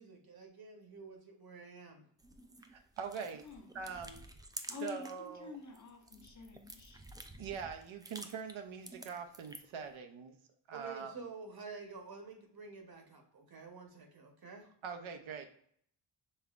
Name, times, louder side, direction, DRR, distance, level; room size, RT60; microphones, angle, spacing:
voice 1, 0.0-2.1 10.7-14.7, right 4 dB, 50° right, 4 dB, 1.1 m, -49 dB
sound 1, 2.2-5.3 5.6-9.8, right 2 dB, 10° right, 0.3 m, -51 dB
voice 2, 2.7-3.5 3.7-4.2 4.8-5.6 7.4-10.3 10.7-11.1 14.8-15.5, right 6 dB, 75° right, 6 dB, 0.7 m, -43 dB
voice 3, 4.7-7.0, left 5 dB, 35° left, 2 dB, 0.9 m, -48 dB
5.4 x 3.4 x 2.4 m, 0.64 s
wide cardioid pair, 90°, 48 cm